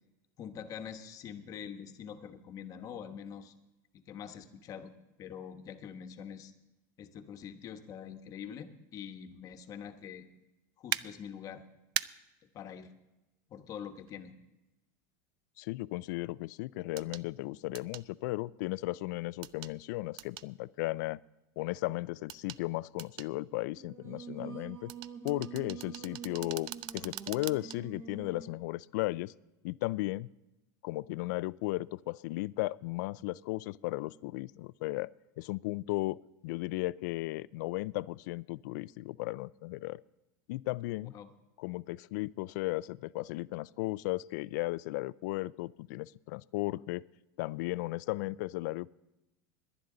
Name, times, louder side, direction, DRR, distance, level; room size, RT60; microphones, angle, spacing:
voice 1, 0.4-3.5 3.9-4.9 5.2-6.5 7.0-10.3 10.8-11.6 12.5-12.9 13.5-14.3 41.0-41.3, left 8 dB, 35° left, 7 dB, 1.1 m, -45 dB
sound 1, 10.9-11.0 12.0-12.1 14.1-14.2 17.0-17.2 17.8-18.1 19.4-19.7 20.2-20.5 22.3-22.6 23.0-23.3 24.9-27.8 28.2-28.3, right 15 dB, 50° right, 0.4 m, -39 dB
voice 2, 15.6-21.2 21.6-24.9 25.2-29.3 29.6-30.3 30.8-35.1 35.4-40.0 40.5-41.1 41.6-47.0 47.4-48.9, left 19 dB, 70° left, 20 dB, 0.4 m, -35 dB
Singing, 23.7-28.6, right 6 dB, 30° right, 1.8 m, -46 dB
18.5 x 11.0 x 3.9 m, 0.97 s
supercardioid pair, 145°, 10 cm